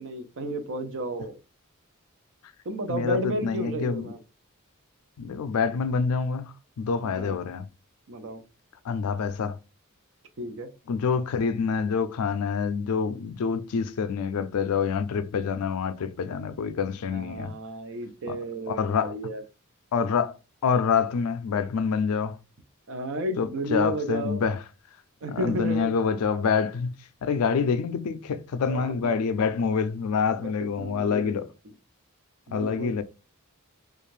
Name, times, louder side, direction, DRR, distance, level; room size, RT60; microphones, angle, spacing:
voice 1, 0.0-1.3 2.7-4.2 7.0-7.4 8.1-8.4 10.4-10.7 17.1-19.4 22.9-24.4 25.2-25.9 28.7-28.9 30.4-30.5 30.8-31.3 32.5-32.9, right 1 dB, 60° right, 0.5 m, -32 dB
voice 2, 2.9-4.1 5.2-7.7 8.8-9.6 10.9-17.6 18.3-18.4 18.7-19.1 19.9-20.4 20.6-22.4 23.4-24.6 25.3-26.9 27.2-31.5 32.5-33.0, left 6 dB, 75° left, 0.4 m, -26 dB
2.5 x 2.3 x 3.1 m
head